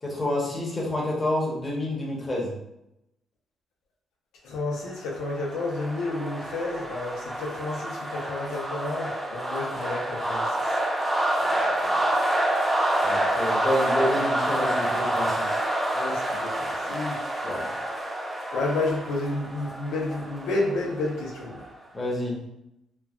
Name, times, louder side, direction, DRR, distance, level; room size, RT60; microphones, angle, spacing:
voice 1, 0.0-2.6 11.5-11.9 13.0-15.6 17.4-17.7 21.9-22.4, left 1 dB, 25° left, -3 dB, 1.0 m, -29 dB
voice 2, 4.4-10.6 15.9-17.2 18.5-21.6, left 2 dB, 85° left, -2 dB, 0.7 m, -30 dB
sound 1, 5.0-21.7, right 1 dB, 20° right, 0.6 m, -28 dB
3.1 x 2.2 x 2.4 m, 0.84 s
cardioid pair, 90°, 0 cm